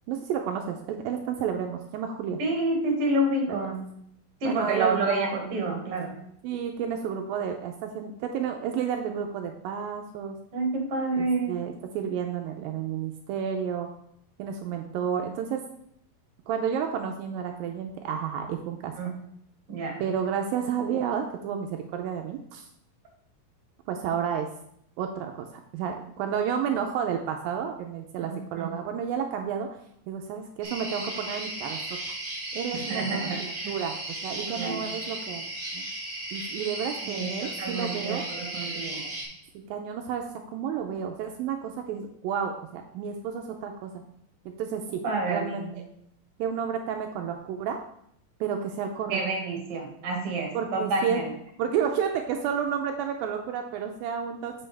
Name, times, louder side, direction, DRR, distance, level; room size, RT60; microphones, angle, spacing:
voice 1, 0.1-2.4 3.5-3.6 4.4-5.4 6.4-10.4 11.2-13.9 14.4-15.6 16.5-18.9 20.0-22.7 23.9-24.5 25.0-29.7 30.1-31.8 32.5-35.4 35.7-35.8 36.3-38.2 39.5-40.3 40.5-44.0 44.5-45.0 45.3-45.8 46.4-47.8 48.4-49.2 50.5-51.2 51.6-54.5, right 7 dB, 85° right, 3 dB, 2.3 m, -31 dB
voice 2, 2.4-3.9 4.4-6.1 10.5-11.6 19.0-19.1 19.7-20.0 28.2-28.7 32.9-33.4 33.6-33.7 34.5-34.9 37.1-39.1 45.0-45.8 49.1-51.3, right 2 dB, 45° right, 0 dB, 2.3 m, -29 dB
sound 1, 30.6-39.2, right 2 dB, 30° right, 2.3 m, -35 dB
7.6 x 6.1 x 3.3 m, 0.71 s
omnidirectional pair, 4.2 m